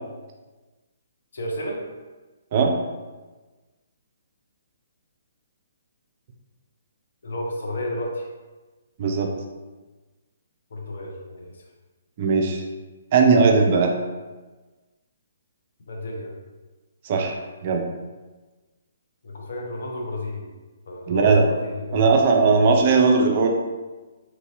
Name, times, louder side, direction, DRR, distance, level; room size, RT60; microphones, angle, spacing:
voice 1, 1.3-1.8 7.2-8.3 10.7-11.6 15.9-16.3 19.2-20.5 20.9-22.4, left 1 dB, 60° left, -1 dB, 0.6 m, -32 dB
voice 2, 9.0-9.3 12.2-12.6 13.1-13.9 17.0-17.4 17.6-17.8 21.1-21.4 21.9-23.5, right 4 dB, 40° right, 2 dB, 0.4 m, -18 dB
2.9 x 2.6 x 2.6 m, 1.2 s
figure-of-eight pair, 130°, 0 cm